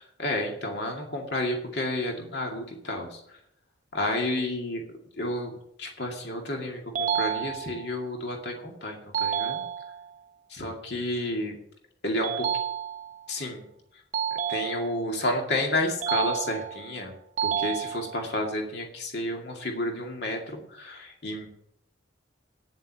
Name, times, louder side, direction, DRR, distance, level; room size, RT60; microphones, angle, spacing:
voice 1, 0.0-3.4 3.9-4.8 5.2-5.5 5.8-9.6 10.5-11.6 12.0-12.3 13.3-13.6 14.5-17.1 17.4-21.5, left 1 dB, 60° left, 1 dB, 2.3 m, -31 dB
sound 1, 7.0-8.0 9.1-10.1 12.2-13.3 14.1-15.2 16.0-16.9 17.4-18.4, right 8 dB, 40° right, 0.6 m, -30 dB
9.8 x 7.4 x 7.4 m, 0.73 s
head